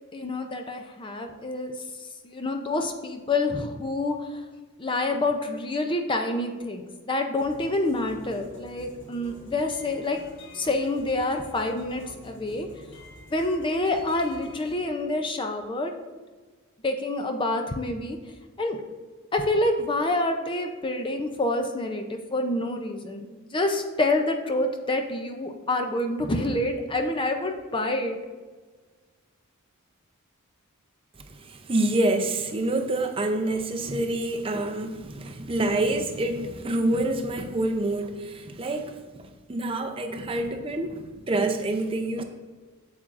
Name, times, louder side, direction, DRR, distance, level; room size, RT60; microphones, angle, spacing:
voice 1, 0.1-1.7 2.2-4.4 4.8-10.2 10.5-12.7 13.3-15.9 16.8-18.2 18.6-18.8 19.3-28.2, left 2 dB, 20° left, 5 dB, 0.5 m, -27 dB
sound 1, 7.4-14.8, left 1 dB, 55° left, 2.2 m, -48 dB
voice 2, 31.3-42.2, right 2 dB, 25° right, 5 dB, 0.5 m, -27 dB
8.5 x 7.2 x 2.5 m, 1.4 s
head